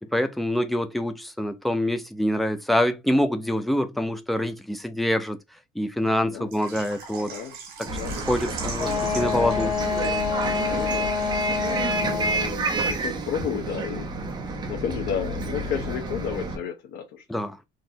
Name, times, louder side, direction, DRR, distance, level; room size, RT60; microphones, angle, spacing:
voice 1, 0.1-5.4 5.8-7.3 7.8-7.9 8.2-9.7 17.3-17.5, left 1 dB, ahead, 0.4 m, -25 dB
Water / Liquid, 6.5-12.1 12.4-12.5 12.9-13.0, right 5 dB, 65° right, 1.6 m, -40 dB
voice 2, 7.2-7.6 7.8-8.6 10.5-11.1 11.7-14.1 14.7-17.4, left 8 dB, 75° left, 0.9 m, -33 dB
Bus, 7.9-16.6, right 3 dB, 25° right, 0.8 m, -29 dB
Wind instrument woodwind instrument, 8.8-12.5, left 6 dB, 45° left, 2.0 m, -27 dB
4.0 x 3.0 x 2.7 m
cardioid pair, 165°, 17 cm